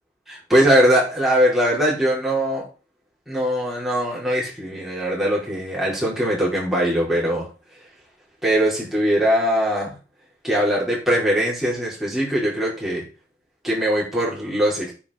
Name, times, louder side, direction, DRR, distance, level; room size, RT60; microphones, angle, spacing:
voice 1, 0.3-2.7 3.3-7.5 8.4-10.0 10.4-13.1 13.6-14.9, equal, ahead, -6 dB, 4.8 m, -21 dB
9.5 x 7.4 x 4.5 m, 0.35 s
head